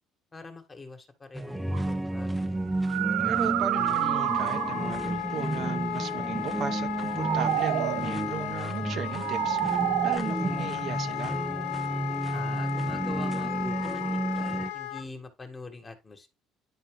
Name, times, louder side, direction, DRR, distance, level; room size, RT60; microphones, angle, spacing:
voice 1, 0.3-2.3 12.3-16.3, left 3 dB, 20° left, 1.7 m, -43 dB
sound 1, 1.3-14.7, right 2 dB, 5° right, 0.7 m, -32 dB
sound 2, 1.7-1.9 2.7-5.0 6.9-8.1 9.0-10.2, right 16 dB, 85° right, 0.4 m, -28 dB
voice 2, 3.2-11.4, right 8 dB, 50° right, 0.8 m, -36 dB
Wind instrument woodwind instrument, 3.7-15.0, left 13 dB, 90° left, 0.6 m, -35 dB
10.5 x 4.2 x 3.6 m
cardioid pair, 120°, 0 cm